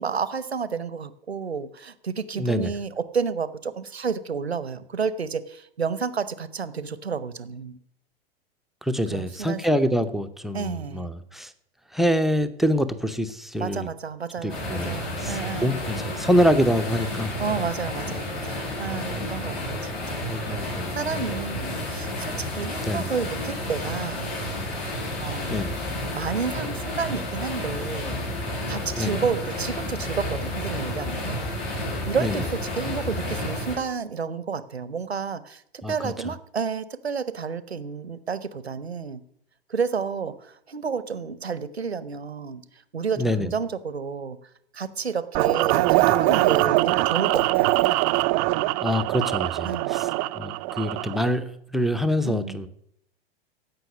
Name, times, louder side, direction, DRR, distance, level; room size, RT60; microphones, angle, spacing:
voice 1, 0.0-7.8 9.1-9.8 10.5-11.1 13.6-15.9 17.4-19.8 20.1-24.3 25.2-25.8 26.1-28.2 28.7-31.4 32.1-39.2 39.7-42.6 42.9-44.4 44.7-47.8 49.6-50.0 52.2-52.7, right 5 dB, 85° right, 15 dB, 0.9 m, -31 dB
voice 2, 2.3-2.7 8.8-11.5 11.9-13.9 14.4-17.4 19.1-19.4 20.3-21.0 22.9-23.1 25.5-25.8 29.0-29.2 32.2-32.4 35.8-36.1 43.2-43.5 48.8-52.7, equal, ahead, 7 dB, 0.7 m, -25 dB
sound 1, 14.5-33.8, left 1 dB, 60° left, 6.4 m, -31 dB
sound 2, 45.3-51.3, right 18 dB, 40° right, 0.6 m, -22 dB
15.5 x 5.9 x 8.1 m, 0.72 s
figure-of-eight pair, 90°, 31 cm